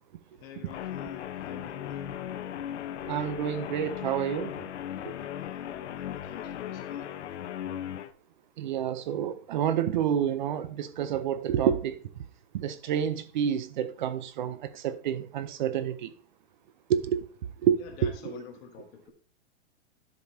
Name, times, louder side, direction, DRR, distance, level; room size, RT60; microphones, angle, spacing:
voice 1, 0.4-2.0 5.2-7.1 17.8-19.1, left 8 dB, 25° left, 1.2 m, -47 dB
Guitar, 0.7-8.1, left 10 dB, 75° left, 0.8 m, -37 dB
voice 2, 3.1-4.6 5.0-5.1 8.6-12.0 12.5-16.1 16.9-17.2 17.6-18.3, right 9 dB, 45° right, 0.6 m, -29 dB
12.0 x 5.2 x 2.7 m
hypercardioid pair, 160°, 35 cm